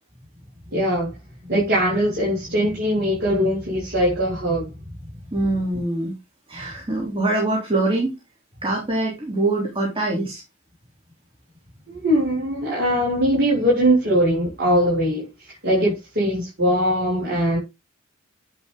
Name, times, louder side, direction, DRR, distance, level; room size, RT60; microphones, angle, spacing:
voice 1, 0.7-1.1 1.5-4.7 11.9-15.3 15.6-17.6, equal, 50° right, 6.0 m, -21 dB
voice 2, 5.3-6.1 6.5-8.1 8.6-10.4, right 2 dB, 25° right, 3.0 m, -23 dB
10.5 x 4.8 x 3.9 m
head